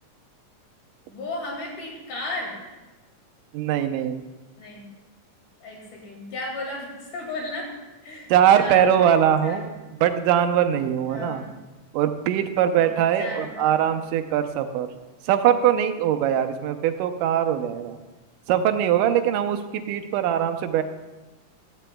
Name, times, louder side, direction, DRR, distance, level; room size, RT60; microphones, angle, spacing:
voice 1, 1.1-2.6 4.6-4.9 5.6-7.7 8.0-9.1 9.4-9.7 11.1-11.5 12.8-14.0, left 2 dB, 75° left, -1 dB, 3.7 m, -34 dB
voice 2, 3.5-4.2 8.3-9.7 10.0-11.4 11.9-14.9 15.3-18.0 18.5-20.8, right 10 dB, 85° right, 8 dB, 2.3 m, -21 dB
16.0 x 11.5 x 2.3 m, 1.2 s
omnidirectional pair, 3.7 m